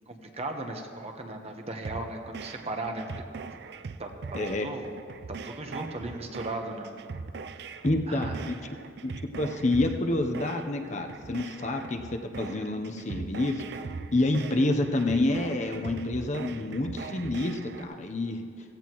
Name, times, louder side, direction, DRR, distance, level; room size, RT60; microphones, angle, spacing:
voice 1, 0.1-3.2 3.5-3.6 4.0-4.9 5.3-6.9 8.1-8.5, right 2 dB, 35° right, 4 dB, 1.0 m, -37 dB
sound 1, 1.8-17.8, right 4 dB, 60° right, 0.4 m, -41 dB
voice 2, 4.3-4.7 7.8-8.6 9.0-13.6 14.1-18.4, left 2 dB, 40° left, 4 dB, 0.8 m, -28 dB
16.0 x 15.5 x 3.1 m, 2.4 s
head